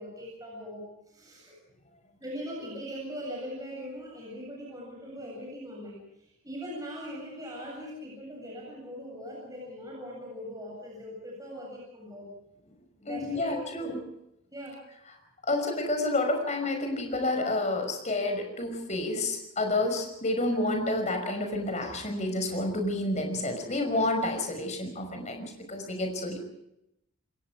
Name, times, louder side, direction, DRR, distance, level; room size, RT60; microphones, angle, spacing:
voice 1, 0.0-1.5 2.2-12.3 13.1-13.9 14.5-14.8, equal, 15° right, -3 dB, 7.9 m, -41 dB
voice 2, 13.0-14.0 15.5-26.4, left 2 dB, 35° left, 5 dB, 5.7 m, -29 dB
28.5 x 21.5 x 4.9 m, 0.83 s
head